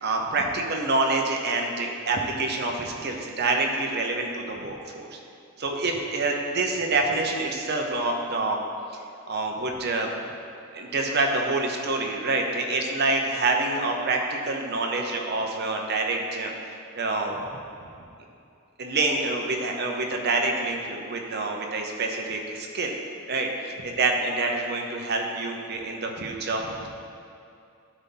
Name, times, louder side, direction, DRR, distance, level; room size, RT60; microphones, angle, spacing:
voice 1, 0.0-5.1 5.6-8.6 9.3-10.1 10.7-16.5 16.9-17.4 18.8-22.9 23.3-23.5 23.8-26.9, right 3 dB, 50° right, 2 dB, 0.8 m, -27 dB
12.0 x 4.1 x 3.9 m, 2.5 s
head